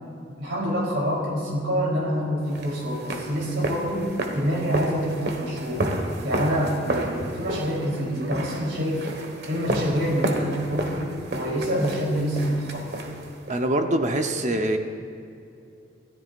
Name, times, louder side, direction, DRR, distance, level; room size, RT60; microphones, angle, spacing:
voice 1, 0.4-4.1 4.3-5.8 6.2-9.0 9.5-11.0 11.3-12.9, equal, 90° right, -3 dB, 3.8 m, -26 dB
sound 1, 2.5-13.6, right 1 dB, 60° right, 1.6 m, -31 dB
voice 2, 13.5-14.8, right 1 dB, 40° right, 5 dB, 1.0 m, -24 dB
27.0 x 13.5 x 2.6 m, 2.6 s
head